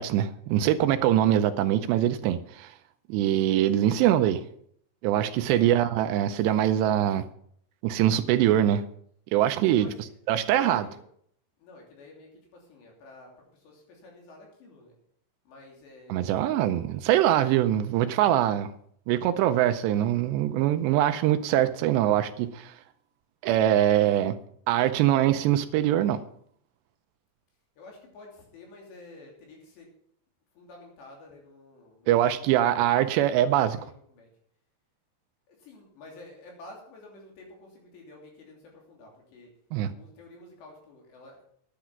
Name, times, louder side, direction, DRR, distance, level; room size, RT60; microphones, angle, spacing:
voice 1, 0.0-2.7 3.1-4.4 5.0-7.3 7.8-8.8 9.3-9.9 10.3-10.9 16.1-18.7 19.1-22.7 23.4-24.4 24.7-26.2 32.1-33.8 39.7-39.9, right 12 dB, 80° right, 2.6 m, -23 dB
voice 2, 9.7-10.9 11.6-14.9 15.4-16.4 27.8-29.9 30.5-32.8 33.1-34.3 35.5-39.5 39.9-41.4, left 2 dB, 65° left, 5.2 m, -50 dB
10.5 x 10.0 x 6.0 m
omnidirectional pair, 5.4 m